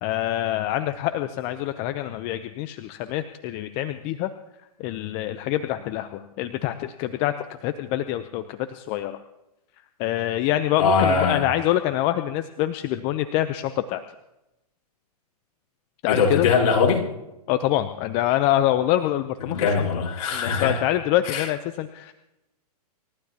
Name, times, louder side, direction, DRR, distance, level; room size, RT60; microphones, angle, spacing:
voice 1, 0.0-4.3 4.8-7.3 7.6-9.2 10.0-14.0 16.0-16.5 17.5-19.9 20.3-22.1, left 13 dB, 30° left, 10 dB, 0.7 m, -25 dB
voice 2, 10.8-11.4 16.1-17.1 19.5-20.8 21.3-21.5, left 5 dB, 50° left, -2 dB, 4.8 m, -21 dB
28.5 x 14.5 x 2.9 m, 0.94 s
hypercardioid pair, 135°, 20 cm